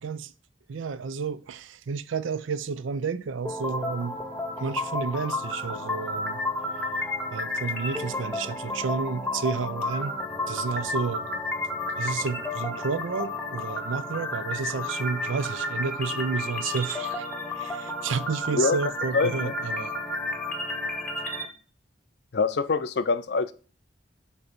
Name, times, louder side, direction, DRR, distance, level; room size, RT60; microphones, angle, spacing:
voice 1, 0.0-0.3 0.7-4.2 4.6-6.4 7.3-10.2 10.5-11.3 12.0-20.0, right 5 dB, 85° right, 0.5 m, -31 dB
sound 1, 3.4-21.4, left 2 dB, 10° left, 0.8 m, -32 dB
voice 2, 19.1-19.5 22.3-23.5, left 4 dB, 60° left, 0.5 m, -24 dB
8.1 x 3.0 x 5.0 m
head